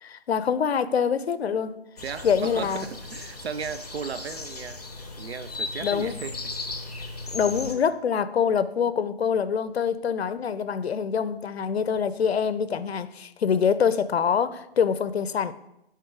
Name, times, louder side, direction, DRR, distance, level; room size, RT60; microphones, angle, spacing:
voice 1, 0.0-1.8 2.2-2.9 5.8-6.1 7.3-15.5, left 7 dB, 80° left, 0.5 m, -25 dB
sound 1, 2.0-7.7, left 3 dB, 40° left, 0.6 m, -36 dB
voice 2, 2.0-4.8 5.2-6.4 7.7-7.8, right 7 dB, 85° right, 0.5 m, -36 dB
5.7 x 3.6 x 4.7 m
hypercardioid pair, 170°, 31 cm